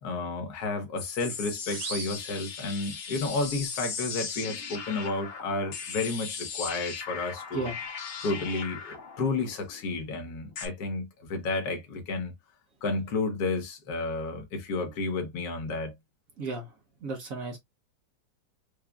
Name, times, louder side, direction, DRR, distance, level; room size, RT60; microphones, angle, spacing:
voice 1, 0.0-7.7 8.2-12.3 12.8-15.9, left 3 dB, 60° left, 1.4 m, -31 dB
sound 1, 1.0-10.7, left 6 dB, 90° left, 1.8 m, -38 dB
sound 2, 1.6-3.2, right 7 dB, 85° right, 1.5 m, -42 dB
voice 2, 16.4-16.7 17.0-17.6, right 3 dB, 55° right, 1.0 m, -34 dB
4.9 x 2.5 x 2.3 m
omnidirectional pair, 2.1 m